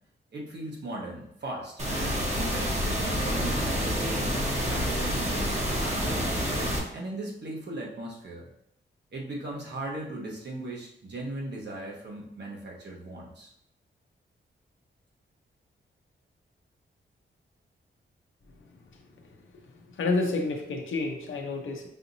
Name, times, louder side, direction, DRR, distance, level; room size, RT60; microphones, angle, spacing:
voice 1, 0.3-5.3 5.7-6.5 6.9-8.5 9.1-13.5, right 1 dB, 60° right, -2 dB, 1.1 m, -38 dB
sound 1, 1.8-6.8, equal, 35° right, 1.0 m, -28 dB
voice 2, 19.5-21.9, left 3 dB, 85° left, 2 dB, 0.6 m, -30 dB
5.5 x 2.9 x 2.7 m, 0.74 s
wide cardioid pair, 115°, 20 cm